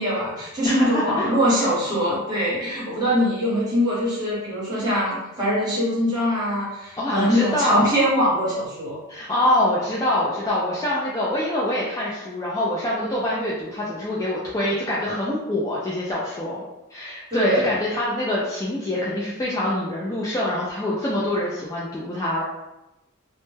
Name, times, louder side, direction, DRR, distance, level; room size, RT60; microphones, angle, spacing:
voice 1, 0.0-9.0 17.3-17.7, equal, 20° right, -9 dB, 1.0 m, -23 dB
voice 2, 0.6-1.4 7.0-7.9 9.1-16.6 16.9-22.4, left 1 dB, 15° left, -6 dB, 0.3 m, -25 dB
2.1 x 2.1 x 3.1 m, 0.94 s
head